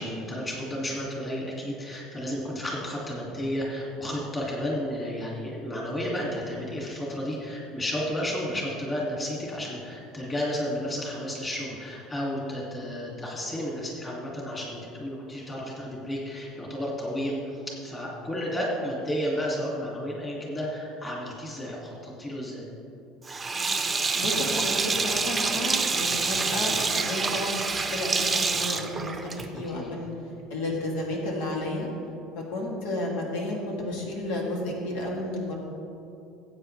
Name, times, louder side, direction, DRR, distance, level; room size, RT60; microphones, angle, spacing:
voice 1, 0.0-22.6 29.6-29.9, equal, 15° left, -4 dB, 2.3 m, -32 dB
Sink (filling or washing), 23.3-29.7, right 4 dB, 15° right, 0.7 m, -27 dB
voice 2, 24.1-30.1 30.5-31.9 32.4-35.5, left 1 dB, 80° left, -2 dB, 2.5 m, -32 dB
19.0 x 8.6 x 3.3 m, 2.7 s
cardioid pair, 155°, 0 cm